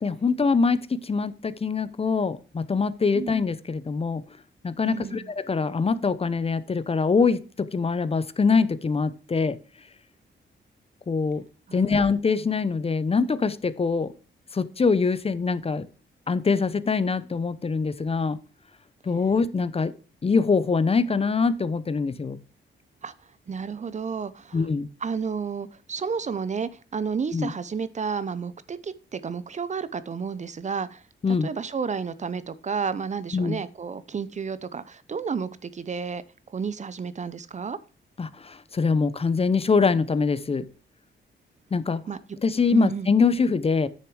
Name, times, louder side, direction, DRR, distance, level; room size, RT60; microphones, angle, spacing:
voice 1, 0.0-4.2 4.6-9.6 11.1-11.4 11.7-14.1 14.5-15.9 16.3-18.4 19.1-19.9 20.2-22.4 24.5-24.9 27.3-27.5 31.2-31.5 33.3-33.6 38.2-40.7 41.7-42.0 42.4-43.9, left 4 dB, 30° left, 15 dB, 0.7 m, -24 dB
voice 2, 4.9-5.3 11.7-11.9 23.0-23.1 23.5-24.7 25.0-31.0 31.3-36.2 36.5-37.8 42.1-42.2 42.7-43.1, right 6 dB, 35° right, 15 dB, 0.6 m, -31 dB
9.6 x 6.7 x 4.7 m, 0.34 s
cardioid pair, 110°, 20 cm